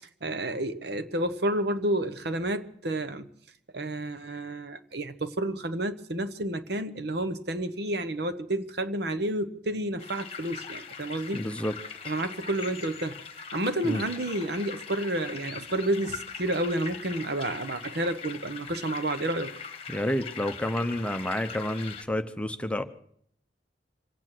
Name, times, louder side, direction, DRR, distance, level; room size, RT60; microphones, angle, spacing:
voice 1, 0.2-3.3 3.7-11.4 12.1-13.2 13.5-19.5, right 1 dB, 65° right, 1.1 m, -30 dB
sound 1, 10.0-22.0, left 6 dB, 35° left, 1.3 m, -41 dB
voice 2, 11.3-11.8 13.8-14.0 19.9-22.8, left 1 dB, 5° left, 0.8 m, -29 dB
26.5 x 8.8 x 6.1 m
head